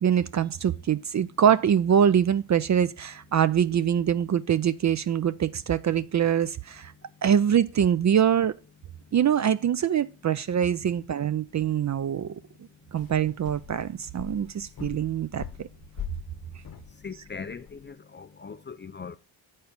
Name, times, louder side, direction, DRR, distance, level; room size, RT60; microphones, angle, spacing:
voice 1, 0.0-6.9 7.2-8.5 9.1-12.3 12.9-15.4, right 9 dB, 40° right, 0.4 m, -24 dB
sound 1, 12.9-17.9, left 10 dB, 50° left, 1.0 m, -43 dB
voice 2, 17.0-19.2, left 5 dB, 25° left, 0.4 m, -40 dB
8.2 x 4.4 x 5.1 m
cardioid pair, 80°, 47 cm